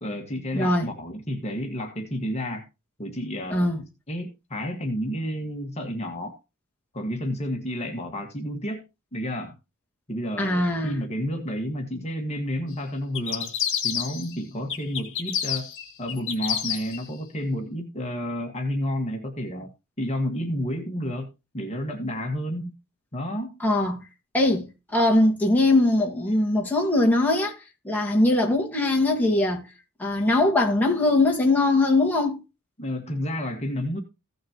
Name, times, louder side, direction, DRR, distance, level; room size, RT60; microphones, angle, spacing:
voice 1, 0.0-2.6 3.0-3.7 4.1-6.4 6.9-8.8 9.1-9.5 10.1-13.5 13.8-15.7 16.0-19.7 20.0-21.3 21.5-22.8 23.1-23.6 32.8-34.0, equal, 30° left, 1.7 m, -30 dB
voice 2, 0.5-0.9 3.5-3.8 10.4-11.1 23.6-24.0 24.3-27.6 27.8-29.7 30.0-32.4, left 2 dB, 10° left, 2.0 m, -21 dB
sound 1, 13.1-14.4 14.7-17.0, left 9 dB, 60° left, 2.1 m, -29 dB
16.0 x 6.5 x 3.0 m
head